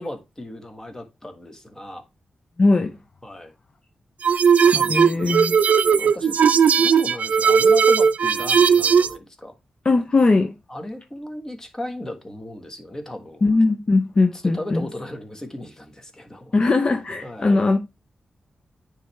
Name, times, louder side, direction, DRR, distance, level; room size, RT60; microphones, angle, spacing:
voice 1, 0.0-2.0 3.2-3.5 4.7-5.1 6.0-6.4 6.8-9.5 10.7-13.4 14.3-16.5 17.2-17.6, left 1 dB, 20° left, 1.4 m, -35 dB
voice 2, 2.6-3.0 4.7-5.6 9.8-10.5 13.4-14.9 16.5-17.8, left 3 dB, 40° left, 0.6 m, -19 dB
sound 1, 4.2-9.1, right 6 dB, 70° right, 0.4 m, -17 dB
9.4 x 3.3 x 3.2 m
cardioid pair, 80°, 3 cm